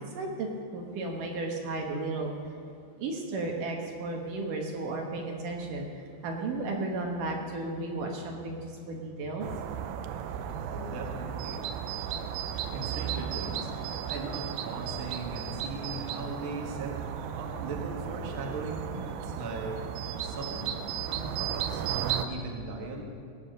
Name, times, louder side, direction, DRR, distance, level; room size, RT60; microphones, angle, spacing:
voice 1, 0.0-2.3 3.0-9.5, right 2 dB, 65° right, 1 dB, 2.5 m, -34 dB
sound 1, 9.4-22.3, right 9 dB, 80° right, 2.4 m, -35 dB
voice 2, 10.7-11.6 12.5-13.7 14.1-17.0 17.3-19.8 20.2-20.6 20.9-23.0, right 2 dB, 50° right, 0 dB, 1.7 m, -39 dB
19.0 x 8.0 x 6.6 m, 2.5 s
omnidirectional pair, 4.5 m